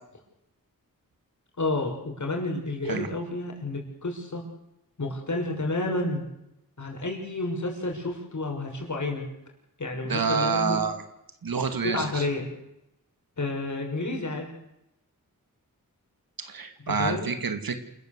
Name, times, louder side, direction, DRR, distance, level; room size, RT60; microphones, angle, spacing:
voice 1, 1.6-4.4 5.0-6.2 6.8-9.2 9.8-10.8 11.9-12.5 13.4-14.5 16.9-17.3, left 2 dB, 55° left, 1 dB, 6.3 m, -30 dB
voice 2, 10.1-11.0 11.4-12.3 16.4-17.8, right 5 dB, 80° right, 8 dB, 2.4 m, -28 dB
28.0 x 14.0 x 8.2 m, 0.85 s
wide cardioid pair, 90°, 35 cm